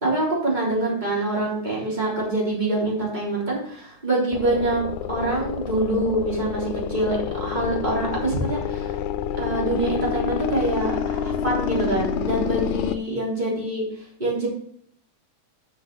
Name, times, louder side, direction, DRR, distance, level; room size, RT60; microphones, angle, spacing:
voice 1, 0.0-9.0 9.3-13.8 14.2-14.5, right 2 dB, 15° right, -5 dB, 3.6 m, -25 dB
sound 1, 4.3-13.0, left 8 dB, 85° left, 2.0 m, -28 dB
7.9 x 5.9 x 6.2 m, 0.64 s
omnidirectional pair, 3.3 m